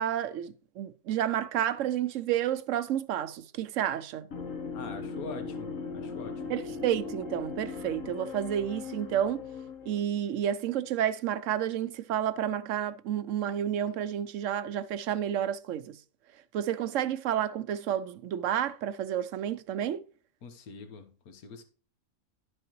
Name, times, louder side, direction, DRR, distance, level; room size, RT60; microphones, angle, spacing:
voice 1, 0.0-4.3 6.5-9.4 9.9-16.0 16.5-20.0, right 10 dB, 65° right, 0.9 m, -30 dB
sound 1, 4.3-10.0, left 5 dB, 65° left, 1.6 m, -39 dB
voice 2, 4.7-6.6 20.4-21.6, left 4 dB, 80° left, 1.6 m, -44 dB
12.0 x 6.5 x 3.0 m
omnidirectional pair, 1.5 m